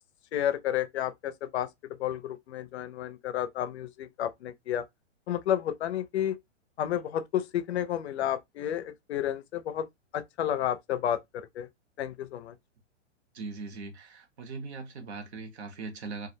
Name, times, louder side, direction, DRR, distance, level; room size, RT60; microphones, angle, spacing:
voice 1, 0.3-1.7 2.0-4.8 5.3-6.4 6.8-9.9 10.1-11.7 12.0-12.5, left 10 dB, 60° left, 0.5 m, -31 dB
voice 2, 13.3-16.3, right 4 dB, 60° right, 0.9 m, -40 dB
2.3 x 2.0 x 2.6 m
hypercardioid pair, 160°, 37 cm